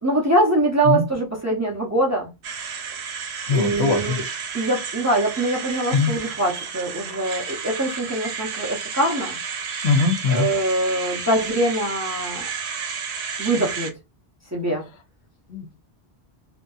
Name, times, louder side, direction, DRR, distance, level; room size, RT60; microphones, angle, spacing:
voice 1, 0.0-2.3 3.5-4.2 4.5-9.4 10.3-12.5 13.4-14.0 14.5-14.9, right 1 dB, 20° right, 0.5 m, -23 dB
sound 1, 2.4-13.9, right 6 dB, 80° right, 0.9 m, -32 dB
voice 2, 3.5-4.2 5.9-6.1 9.8-10.5 15.5-15.8, left 4 dB, 85° left, 0.9 m, -21 dB
2.8 x 2.5 x 2.3 m
omnidirectional pair, 1.1 m